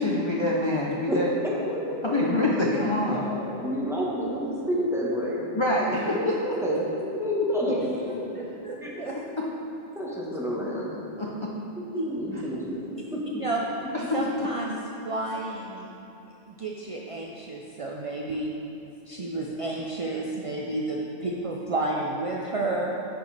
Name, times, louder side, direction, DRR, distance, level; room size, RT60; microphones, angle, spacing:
voice 1, 0.0-1.3 2.0-3.2 5.6-6.4 9.3-9.4 10.6-10.7 11.2-11.5 13.9-14.5, left 2 dB, 35° left, -3 dB, 0.5 m, -26 dB
voice 2, 1.1-2.2 3.0-8.4 8.8-9.1 9.9-10.9 11.8-13.4, equal, ahead, -6 dB, 1.2 m, -30 dB
voice 3, 8.3-9.1 11.9-12.0 13.4-13.6 14.1-14.8 15.0-15.9 16.5-18.5 19.1-22.9, right 2 dB, 55° right, -1 dB, 0.3 m, -31 dB
10.0 x 6.0 x 3.4 m, 2.9 s
omnidirectional pair, 1.2 m